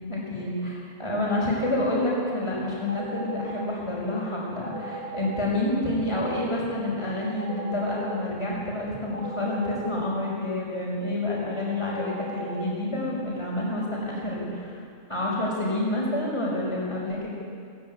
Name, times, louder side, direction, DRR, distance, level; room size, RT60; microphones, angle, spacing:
voice 1, 0.1-14.8 15.1-17.3, left 1 dB, 25° left, -4 dB, 5.2 m, -28 dB
sound 1, 2.9-3.6 4.6-5.4 7.4-8.1 9.1-9.9 11.9-12.6, right 3 dB, 70° left, 3.0 m, -36 dB
19.5 x 15.5 x 9.5 m, 2.3 s
omnidirectional pair, 1.3 m